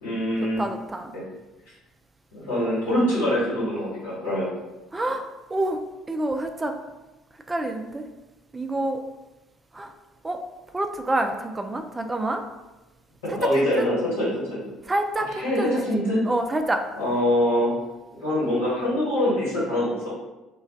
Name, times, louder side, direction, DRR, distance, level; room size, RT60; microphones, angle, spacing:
voice 1, 0.0-0.6 1.1-1.2 2.3-4.5 13.2-14.7 15.3-16.2 17.0-17.7 18.1-20.1, left 1 dB, 75° left, -9 dB, 1.3 m, -24 dB
voice 2, 0.6-1.1 4.9-5.2 5.5-5.8 6.1-6.7 7.5-8.1 8.5-9.0 9.7-9.9 10.2-10.4 10.7-12.5 13.6-13.9 14.9-15.8 16.3-16.8, right 1 dB, 20° right, 5 dB, 0.3 m, -27 dB
2.3 x 2.2 x 3.7 m, 1.1 s
figure-of-eight pair, 55°, 0 cm